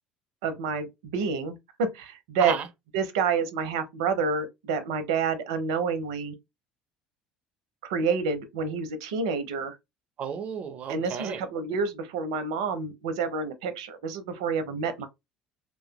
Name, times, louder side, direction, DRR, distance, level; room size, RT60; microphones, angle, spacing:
voice 1, 0.4-2.5 2.9-6.3 7.8-9.8 10.9-15.1, right 5 dB, 75° right, 0.7 m, -28 dB
voice 2, 10.2-11.4, right 7 dB, 45° right, 0.7 m, -32 dB
2.9 x 2.4 x 2.2 m
hypercardioid pair, 65°, 3 cm